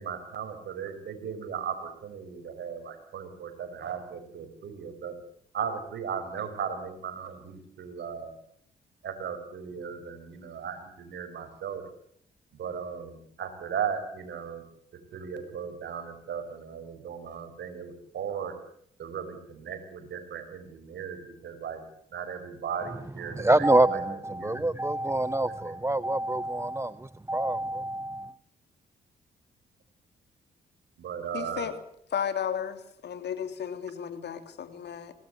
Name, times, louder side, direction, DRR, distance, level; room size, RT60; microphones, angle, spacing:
voice 1, 0.0-5.2 5.5-8.3 9.0-11.9 12.5-14.7 14.9-18.5 19.0-21.8 22.1-24.7 25.1-25.2 25.4-25.8 31.0-31.7, right 7 dB, 65° right, 5.3 m, -37 dB
voice 2, 23.4-28.3, right 2 dB, 15° right, 0.9 m, -26 dB
voice 3, 31.3-31.7 32.1-35.1, left 8 dB, 60° left, 3.2 m, -34 dB
24.0 x 19.0 x 8.0 m
hypercardioid pair, 45°, 19 cm